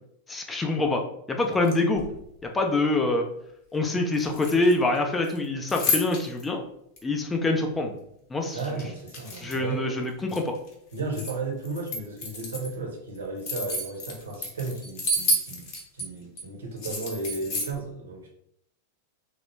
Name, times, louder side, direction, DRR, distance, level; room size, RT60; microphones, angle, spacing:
voice 1, 0.3-2.1 2.4-3.3 3.7-6.6 7.0-8.0 8.3-8.6 9.4-10.5, left 2 dB, 15° left, 2 dB, 0.5 m, -25 dB
sound 1, 1.5-2.2 4.1-5.0 5.2-6.4 7.0-7.1 8.5-9.7 10.1-11.3 11.6-12.7 13.1-16.0 16.4-16.5 16.8-17.7, left 1 dB, 45° left, 0.7 m, -31 dB
voice 2, 8.5-10.0 10.9-18.3, right 3 dB, 70° right, 0 dB, 0.7 m, -34 dB
3.0 x 2.0 x 3.1 m, 0.73 s
figure-of-eight pair, 90°, 0 cm